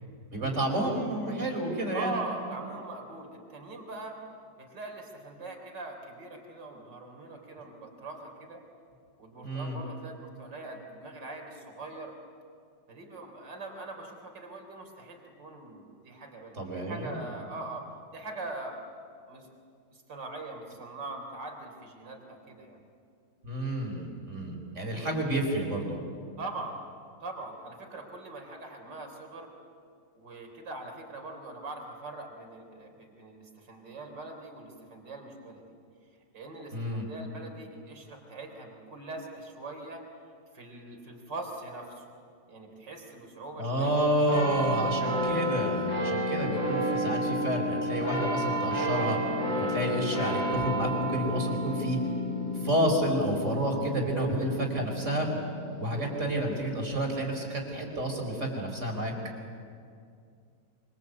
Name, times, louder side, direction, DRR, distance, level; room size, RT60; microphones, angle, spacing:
voice 1, 0.3-2.1 9.4-9.8 16.5-17.2 23.4-26.0 36.7-37.1 43.5-49.2 49.6-52.0 52.5-55.3 55.8-59.1, right 1 dB, 40° right, 2 dB, 5.2 m, -30 dB
voice 2, 1.9-4.2 4.6-8.6 9.2-12.1 12.9-17.8 18.1-18.9 19.3-19.5 19.9-22.8 26.4-26.8 27.2-29.5 30.2-35.8 36.3-40.0 40.5-42.0 42.5-43.9, right 2 dB, 70° right, 3 dB, 4.4 m, -42 dB
sound 1, 44.3-57.2 57.8-57.9, equal, 85° left, 8.8 m, -31 dB
26.0 x 26.0 x 8.3 m, 2.3 s
omnidirectional pair, 2.0 m